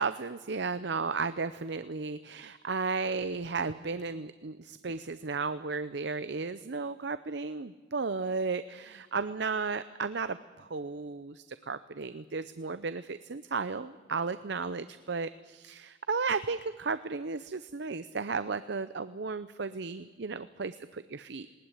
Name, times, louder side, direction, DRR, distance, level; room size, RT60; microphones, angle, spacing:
voice 1, 0.0-21.5, right 4 dB, 60° right, 13 dB, 0.7 m, -34 dB
19.5 x 19.0 x 9.9 m, 1.4 s
head